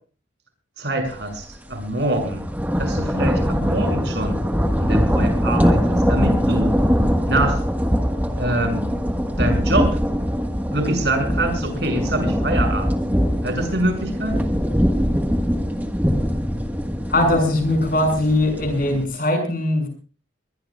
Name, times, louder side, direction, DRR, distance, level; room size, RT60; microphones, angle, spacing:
voice 1, 0.8-2.4 2.8-4.4 4.8-6.7 7.3-7.6 8.4-8.9 9.4-9.9 10.7-13.0 13.4-14.4, right 1 dB, 60° right, 4 dB, 6.6 m, -24 dB
sound 1, 1.2-1.4 1.8-19.0, equal, 10° right, 1.4 m, -22 dB
voice 2, 17.1-19.9, left 1 dB, 45° left, 4 dB, 6.6 m, -20 dB
23.0 x 21.0 x 2.4 m, 0.37 s
head